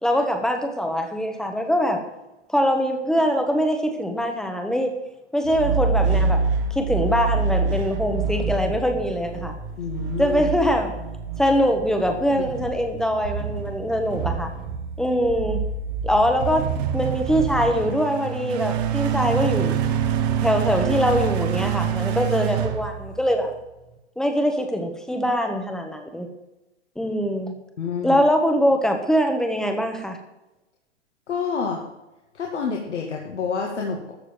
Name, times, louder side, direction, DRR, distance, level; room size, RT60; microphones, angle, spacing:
voice 1, 0.0-2.0 2.5-4.9 5.3-6.4 6.7-9.5 10.2-11.0 11.4-14.5 15.0-15.6 16.0-19.8 20.4-23.5 24.2-26.3 27.0-27.5 28.0-30.2, equal, ahead, 5 dB, 1.2 m, -23 dB
sound 1, 5.4-23.6, right 6 dB, 35° right, 1.4 m, -26 dB
voice 2, 9.8-10.4 12.3-12.4 27.8-28.2 31.3-31.8 32.3-34.1, left 6 dB, 75° left, -1 dB, 2.4 m, -28 dB
14.0 x 4.9 x 8.9 m, 0.98 s
hypercardioid pair, 135°, 35 cm